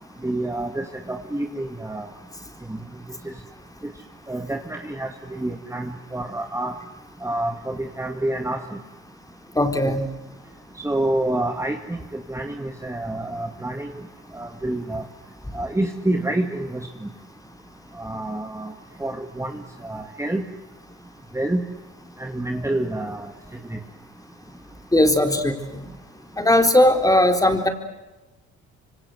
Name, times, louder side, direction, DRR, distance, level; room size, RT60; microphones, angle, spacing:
voice 1, 0.2-2.1 2.7-3.4 4.3-6.8 7.2-8.8 10.7-14.0 14.3-15.0 15.5-17.1 17.9-18.7 19.0-20.5 21.3-21.7 22.2-23.3 23.7-23.8, right 1 dB, 10° right, 4 dB, 2.2 m, -28 dB
voice 2, 9.6-10.1 24.9-25.8 26.4-27.7, left 1 dB, 10° left, 6 dB, 4.1 m, -18 dB
26.5 x 25.5 x 8.0 m, 1.1 s
cardioid pair, 90°, 30 cm